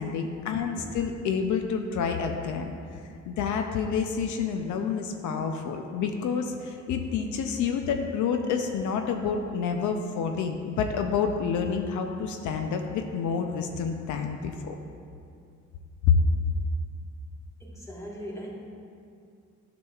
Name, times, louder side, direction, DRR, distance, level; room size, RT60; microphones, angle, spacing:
voice 1, 0.0-2.7 3.3-14.8 16.1-16.2, left 6 dB, 75° left, 5 dB, 0.5 m, -28 dB
voice 2, 17.6-18.5, equal, 10° left, -3 dB, 1.4 m, -39 dB
9.4 x 6.1 x 2.3 m, 2.4 s
cardioid pair, 90°, 30 cm